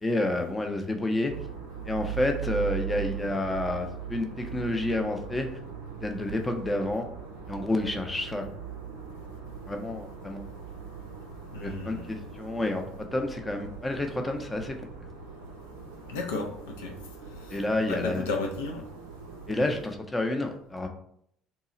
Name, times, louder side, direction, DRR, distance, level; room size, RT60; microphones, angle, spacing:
voice 1, 0.0-1.3 1.9-5.5 6.0-7.0 7.5-8.4 9.7-10.4 11.6-14.7 17.5-18.3 19.5-20.9, left 1 dB, 15° left, 0.5 m, -29 dB
sound 1, 1.3-19.8, right 8 dB, 80° right, 0.5 m, -40 dB
voice 2, 11.5-12.2 16.1-16.9 17.4-17.6 17.9-18.8, left 3 dB, 70° left, 0.4 m, -33 dB
2.9 x 2.3 x 3.9 m
figure-of-eight pair, 55°, 0 cm